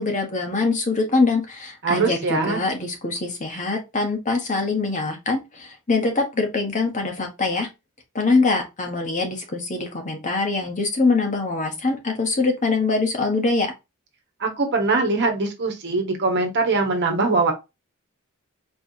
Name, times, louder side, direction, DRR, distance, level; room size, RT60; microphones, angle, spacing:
voice 1, 0.0-7.7 8.1-13.7, left 3 dB, 35° left, 1.3 m, -23 dB
voice 2, 1.8-2.6 14.4-17.5, right 3 dB, 55° right, 1.2 m, -22 dB
4.6 x 3.2 x 2.7 m
head